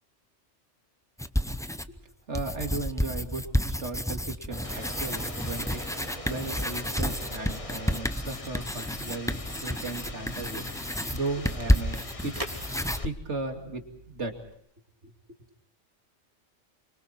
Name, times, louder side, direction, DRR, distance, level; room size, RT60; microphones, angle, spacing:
sound 1, 1.2-2.0 2.3-13.0, equal, 5° left, 0.5 m, -30 dB
voice 1, 2.3-5.8 6.3-10.6 11.1-12.4 13.0-14.4 15.0-15.1, right 3 dB, 70° right, 4 dB, 2.9 m, -36 dB
sound 2, 4.5-14.5, right 1 dB, 30° right, 2.3 m, -45 dB
sound 3, 4.6-13.1, left 3 dB, 30° left, 1.2 m, -43 dB
29.5 x 24.0 x 4.4 m, 0.69 s
omnidirectional pair, 1.2 m